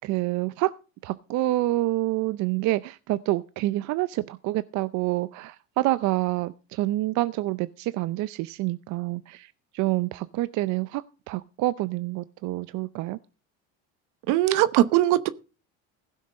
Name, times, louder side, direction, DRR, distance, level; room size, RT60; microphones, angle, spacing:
voice 1, 0.0-0.7 1.0-13.2, right 17 dB, 60° right, 0.6 m, -27 dB
voice 2, 14.3-15.3, right 14 dB, 80° right, 0.9 m, -20 dB
15.5 x 6.4 x 5.2 m
supercardioid pair, 105°, 32 cm